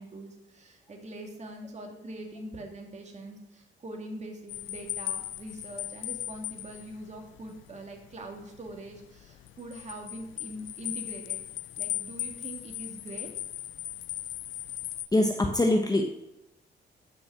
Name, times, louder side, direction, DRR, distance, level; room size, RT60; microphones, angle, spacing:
voice 1, 0.0-11.4 11.8-13.3, right 1 dB, 35° right, 2 dB, 2.4 m, -43 dB
sound 1, 4.5-15.1, left 13 dB, 75° left, 0.5 m, -38 dB
voice 2, 15.1-16.0, left 1 dB, 20° left, 3 dB, 1.1 m, -23 dB
11.5 x 6.1 x 6.2 m, 0.88 s
cardioid pair, 90°, 20 cm